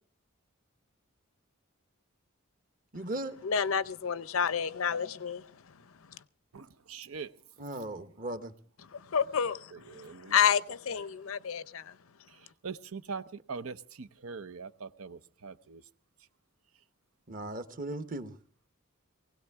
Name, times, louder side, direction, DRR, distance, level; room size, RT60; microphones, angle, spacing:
voice 1, 2.9-3.3 7.6-8.5 17.3-18.4, right 1 dB, 40° right, 1.1 m, -37 dB
voice 2, 3.4-5.4 8.9-9.6 10.2-11.8, left 7 dB, 80° left, 0.6 m, -29 dB
voice 3, 6.5-7.3 9.7-10.4 12.6-15.8, right 5 dB, 90° right, 0.8 m, -42 dB
20.0 x 17.0 x 3.5 m
head